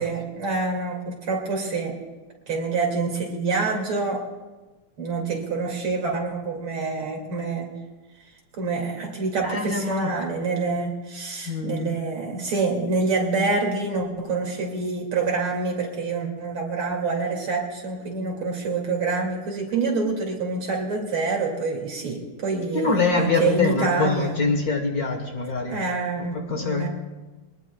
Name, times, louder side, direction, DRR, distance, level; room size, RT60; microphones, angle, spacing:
voice 1, 0.0-2.0 2.5-4.2 5.0-7.7 8.6-24.5 25.7-26.9, right 4 dB, 70° right, 0 dB, 3.2 m, -26 dB
voice 2, 9.4-10.1 11.5-11.9 22.7-25.8 26.3-26.9, left 4 dB, 50° left, 3 dB, 1.5 m, -24 dB
23.0 x 19.0 x 2.3 m, 1.2 s
omnidirectional pair, 2.4 m